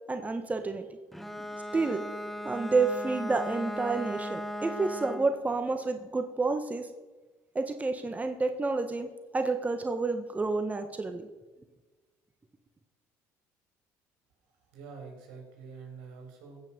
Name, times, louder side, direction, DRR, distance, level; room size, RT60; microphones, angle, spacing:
voice 1, 0.1-0.9 1.7-2.0 2.4-6.9 7.5-11.3, right 3 dB, 20° right, 7 dB, 1.3 m, -29 dB
Bowed string instrument, 1.1-5.4, equal, ahead, 1.3 m, -37 dB
voice 2, 14.6-16.6, right 5 dB, 80° right, 1 dB, 4.6 m, -46 dB
16.0 x 6.0 x 7.5 m, 1.2 s
supercardioid pair, 75°, 7 cm